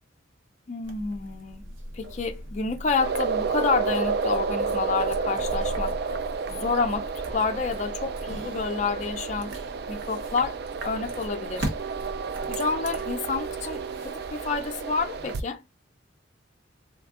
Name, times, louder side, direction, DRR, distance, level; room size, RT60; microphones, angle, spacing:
voice 1, 0.7-1.6 1.9-6.0 6.5-9.5 9.9-11.7 12.5-15.6, left 4 dB, 35° left, 0.4 m, -29 dB
sound 1, 0.8-15.3, equal, 80° right, 1.0 m, -39 dB
sound 2, 3.0-15.4, right 5 dB, 55° right, 0.3 m, -31 dB
3.5 x 3.2 x 2.3 m
head